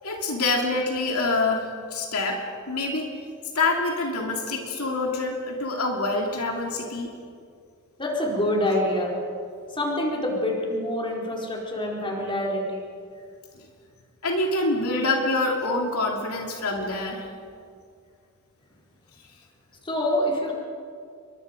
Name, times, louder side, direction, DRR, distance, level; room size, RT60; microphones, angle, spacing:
voice 1, 0.0-3.2 3.5-7.1 14.2-17.3, left 2 dB, 75° left, 1 dB, 2.8 m, -26 dB
voice 2, 8.0-9.2 9.7-12.9 19.8-20.5, left 1 dB, 25° left, -2 dB, 4.3 m, -26 dB
28.5 x 23.5 x 5.2 m, 2.3 s
head